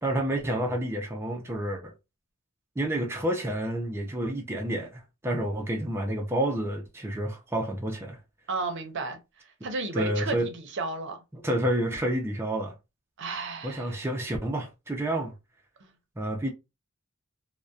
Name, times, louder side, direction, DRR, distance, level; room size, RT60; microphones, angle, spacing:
voice 1, 0.0-1.9 2.8-8.2 9.9-10.5 11.3-12.7 13.6-15.3 16.2-16.5, right 1 dB, 10° right, 0.4 m, -29 dB
voice 2, 8.5-9.2 9.6-11.2 13.2-14.0 15.8-15.9, right 3 dB, 60° right, 0.6 m, -33 dB
2.6 x 2.1 x 2.3 m
head